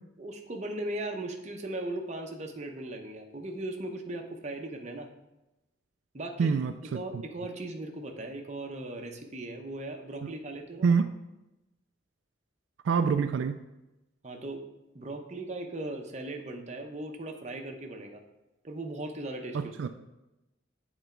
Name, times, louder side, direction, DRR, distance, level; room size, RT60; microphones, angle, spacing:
voice 1, 0.2-5.1 6.1-6.6 6.9-11.0 14.2-14.6 14.9-18.2 18.6-19.6 19.8-19.9, right 2 dB, 35° right, 3 dB, 0.8 m, -38 dB
voice 2, 6.4-7.2 10.8-11.1 12.8-13.6 19.5-19.9, right 5 dB, 80° right, 9 dB, 0.3 m, -26 dB
8.0 x 3.9 x 4.5 m, 0.96 s
head